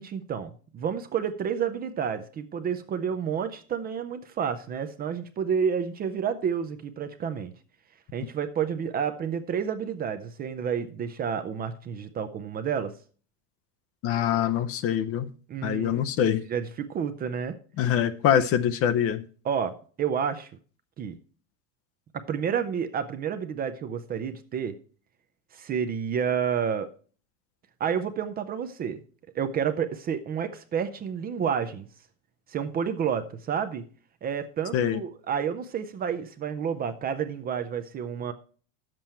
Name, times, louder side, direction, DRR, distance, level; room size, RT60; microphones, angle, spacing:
voice 1, 0.0-7.5 8.1-12.9 15.5-16.0 16.5-17.6 19.4-20.5 21.0-21.2 22.1-24.8 25.5-26.9 27.8-29.0 29.3-31.9 32.5-33.8 34.2-38.3, right 7 dB, 25° right, 9 dB, 0.5 m, -30 dB
voice 2, 14.0-15.3 15.6-16.4 17.8-19.2 34.7-35.0, left 9 dB, 35° left, 11 dB, 0.6 m, -24 dB
10.5 x 7.6 x 4.3 m, 0.42 s
supercardioid pair, 145°, 40 cm